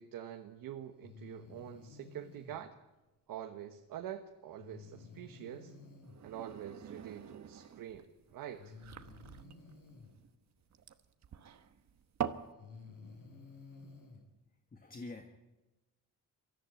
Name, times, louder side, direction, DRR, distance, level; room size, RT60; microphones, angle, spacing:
voice 1, 0.0-2.7 3.3-5.7 6.2-8.1 8.3-8.7, right 10 dB, 90° right, 5 dB, 1.3 m, -46 dB
Breathing, 1.0-2.6 4.6-6.2 7.6-7.7 8.6-10.1 11.7-11.8 12.4-14.2, left 4 dB, 75° left, 6.9 m, -53 dB
sound 1, 6.0-12.5, right 8 dB, 55° right, 1.2 m, -44 dB
voice 2, 14.7-15.3, left 2 dB, 25° left, 4 dB, 1.5 m, -46 dB
24.0 x 14.5 x 9.0 m, 1.1 s
cardioid pair, 125°, 33 cm